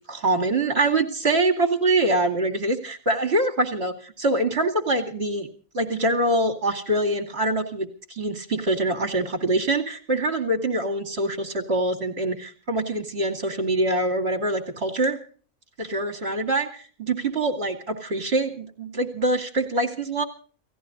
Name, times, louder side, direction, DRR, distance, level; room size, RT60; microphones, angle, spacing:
voice 1, 0.1-5.5 5.7-15.2 15.8-20.2, right 2 dB, 45° right, 3 dB, 2.7 m, -24 dB
30.0 x 16.5 x 2.6 m, 0.43 s
omnidirectional pair, 1.5 m